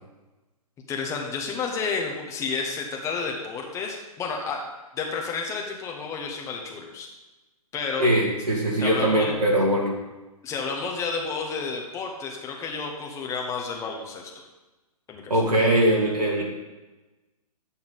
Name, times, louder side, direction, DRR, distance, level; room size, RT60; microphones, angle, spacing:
voice 1, 0.9-4.6 4.9-7.1 7.7-8.1 8.8-9.3 10.4-14.3 15.1-15.3, left 5 dB, 15° left, 0 dB, 1.2 m, -31 dB
voice 2, 8.0-9.9 15.3-16.4, right 1 dB, 85° right, -4 dB, 2.5 m, -21 dB
10.5 x 7.1 x 4.1 m, 1.1 s
figure-of-eight pair, 125°, 20 cm